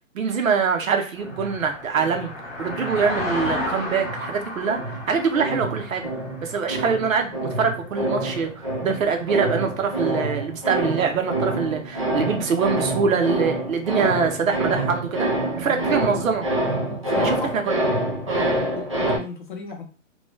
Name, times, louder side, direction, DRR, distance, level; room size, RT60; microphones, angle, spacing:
voice 1, 0.1-2.3 2.6-6.1 6.4-15.3 15.6-16.5 17.2-17.8 18.3-18.5, right 5 dB, 85° right, 4 dB, 0.9 m, -24 dB
sound 1, 1.1-8.5 9.0-9.2, left 1 dB, 10° left, 0.9 m, -33 dB
sound 2, 1.2-3.6 4.0-19.2, right 1 dB, 25° right, 0.4 m, -27 dB
voice 2, 15.6-16.0 16.9-17.5 18.7-19.8, left 4 dB, 40° left, 2 dB, 0.7 m, -34 dB
3.0 x 2.3 x 3.0 m, 0.36 s
hypercardioid pair, 170°, 39 cm